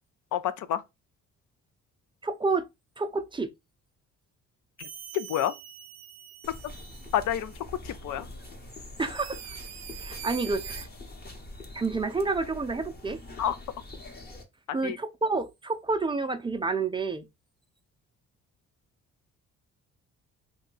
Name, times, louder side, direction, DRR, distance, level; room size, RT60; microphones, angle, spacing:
voice 1, 0.3-0.8 4.8-4.9 5.1-5.5 7.1-8.3 13.4-13.6 14.7-15.0, left 10 dB, 75° left, 0.5 m, -29 dB
voice 2, 2.2-2.7 3.0-3.5 9.0-9.4 10.0-10.9 11.7-13.2 14.7-17.3, right 3 dB, 15° right, 0.4 m, -29 dB
sound 1, 4.8-7.6 8.4-8.5 9.1-10.9, right 10 dB, 60° right, 0.6 m, -44 dB
sound 2, 6.4-14.4, left 2 dB, 30° left, 1.0 m, -44 dB
2.7 x 2.2 x 3.9 m
cardioid pair, 90°, 30 cm